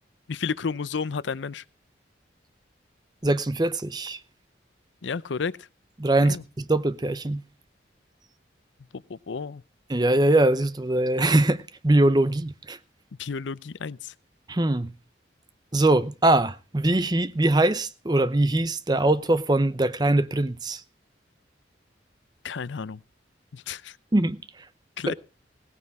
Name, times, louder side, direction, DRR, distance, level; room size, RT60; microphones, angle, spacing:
voice 1, 0.3-1.6 5.0-5.5 6.2-6.4 9.1-9.6 13.2-14.1 22.4-23.0 23.5-24.0 25.0-25.1, left 5 dB, 80° left, 0.5 m, -31 dB
voice 2, 3.2-4.2 6.0-7.4 9.9-12.8 14.5-14.9 15.7-20.8 24.1-24.4 25.1-25.2, right 1 dB, 20° right, 0.6 m, -22 dB
17.0 x 9.7 x 4.7 m
head